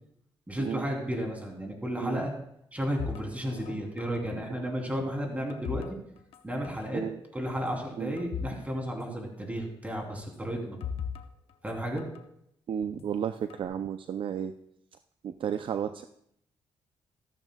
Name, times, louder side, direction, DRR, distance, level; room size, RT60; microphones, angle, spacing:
voice 1, 0.5-2.3 2.7-6.0 6.4-7.0 7.3-10.8 11.6-12.1, equal, 15° right, 1 dB, 3.1 m, -33 dB
sound 1, 3.0-4.5 4.8-6.4 6.6-6.9 7.5-8.6 8.9-9.0 10.2-12.2 12.8-13.6, left 7 dB, 75° left, 0.9 m, -40 dB
voice 2, 12.7-14.5 15.2-16.0, right 8 dB, 60° right, 9 dB, 0.4 m, -33 dB
14.5 x 13.5 x 2.3 m, 0.73 s
cardioid pair, 100°, 10 cm